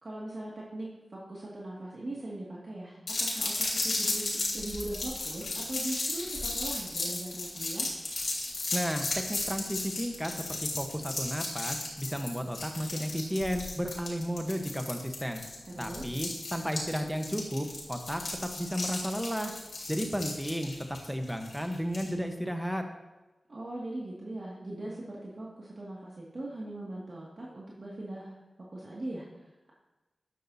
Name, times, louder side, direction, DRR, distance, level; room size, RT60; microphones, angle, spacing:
voice 1, 0.0-3.0 3.3-7.9 15.7-16.2 23.5-28.4 28.7-29.7, right 1 dB, 50° right, -6 dB, 2.1 m, -40 dB
sound 1, 3.1-22.1, left 2 dB, 70° left, 3.6 m, -35 dB
voice 2, 8.7-15.4 15.8-18.2 18.6-19.5 19.9-20.7 21.0-22.8, equal, ahead, 4 dB, 1.1 m, -33 dB
14.0 x 10.5 x 2.8 m, 1.1 s
wide cardioid pair, 100°, 0 cm